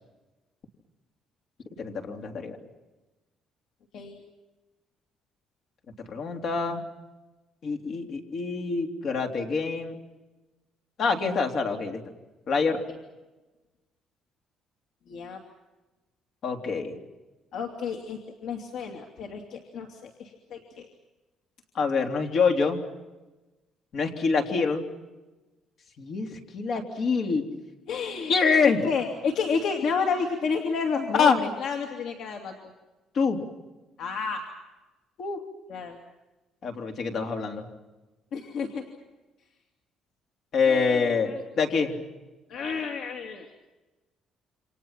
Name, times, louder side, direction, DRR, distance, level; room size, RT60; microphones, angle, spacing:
voice 1, 1.8-2.6 6.0-6.8 7.6-10.0 11.0-12.0 12.5-12.8 16.4-17.0 21.7-22.8 23.9-24.9 26.0-27.4 28.3-28.8 31.1-31.4 33.1-33.4 35.2-35.4 36.6-37.6 40.5-41.9, left 5 dB, 45° left, 4 dB, 3.4 m, -25 dB
voice 2, 15.1-15.4 17.5-20.9 27.9-32.5 34.0-34.4 35.7-36.0 38.3-38.8 40.6-41.4 42.5-43.5, left 5 dB, 65° left, 3 dB, 2.7 m, -31 dB
28.5 x 26.5 x 5.8 m, 1.1 s
cardioid pair, 150°, 0 cm